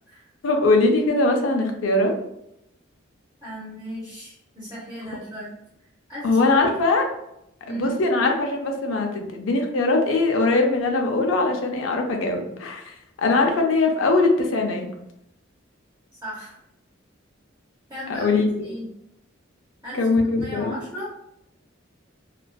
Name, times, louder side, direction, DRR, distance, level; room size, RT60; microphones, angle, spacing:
voice 1, 0.4-2.1 6.2-7.0 7.7-14.9 18.1-18.5 19.9-20.8, left 3 dB, 80° left, 3 dB, 0.5 m, -21 dB
voice 2, 3.4-5.5 6.1-6.3 7.6-8.0 16.2-16.6 17.9-18.3 18.6-18.9 19.8-20.0 20.4-21.1, right 1 dB, 15° right, -11 dB, 0.6 m, -35 dB
2.5 x 2.2 x 2.2 m, 0.81 s
head